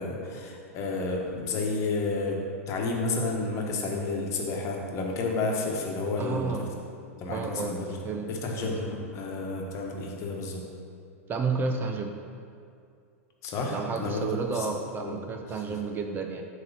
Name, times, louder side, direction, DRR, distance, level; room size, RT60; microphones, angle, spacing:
voice 1, 0.0-2.4 2.7-6.7 7.2-8.0 8.3-10.6 13.4-14.7 15.0-15.2, left 3 dB, 40° left, 0 dB, 1.2 m, -31 dB
voice 2, 6.2-6.7 7.3-7.8 8.0-8.7 11.3-12.2 13.7-16.4, right 4 dB, 25° right, 4 dB, 0.6 m, -31 dB
7.8 x 3.0 x 5.6 m, 2.4 s
hypercardioid pair, 100°, 8 cm